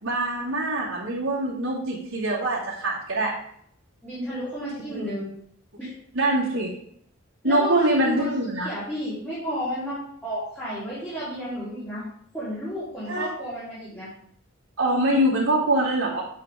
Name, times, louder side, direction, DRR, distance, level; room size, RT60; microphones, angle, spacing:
voice 1, 0.0-3.3 4.9-5.1 6.1-6.7 7.4-8.7 13.1-13.3 14.8-16.2, right 1 dB, 90° right, -7 dB, 2.4 m, -24 dB
voice 2, 4.0-5.3 5.8-5.9 7.4-8.3 8.5-12.1 12.3-14.1, equal, 10° left, -12 dB, 4.1 m, -32 dB
8.4 x 8.4 x 3.7 m, 0.68 s
head